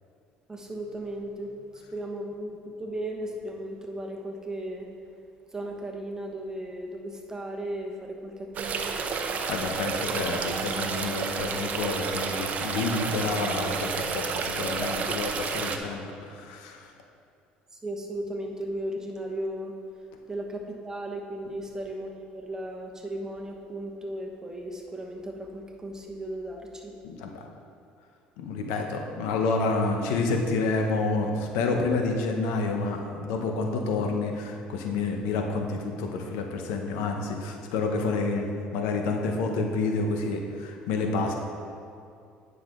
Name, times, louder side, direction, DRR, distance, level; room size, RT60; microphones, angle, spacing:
voice 1, 0.5-4.9 5.5-9.0 17.7-19.8 20.3-26.9, right 1 dB, 15° right, 1 dB, 1.1 m, -36 dB
sound 1, 8.5-15.8, right 5 dB, 45° right, 0.7 m, -30 dB
voice 2, 9.5-16.9 27.0-27.4 28.4-41.3, left 3 dB, 85° left, 3 dB, 0.8 m, -29 dB
9.6 x 5.7 x 3.7 m, 2.5 s
supercardioid pair, 95°, 3 cm